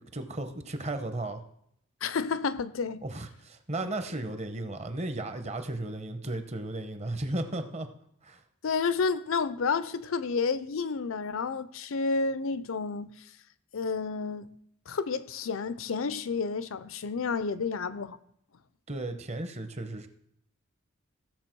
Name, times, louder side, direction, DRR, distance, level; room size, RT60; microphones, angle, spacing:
voice 1, 0.0-1.4 3.0-7.9 8.2-8.4 18.9-20.1, right 2 dB, 30° right, 0.9 m, -35 dB
voice 2, 2.0-3.0 8.6-13.1 13.7-14.5 14.9-18.2, left 5 dB, 80° left, 0.6 m, -30 dB
15.0 x 6.8 x 4.6 m
head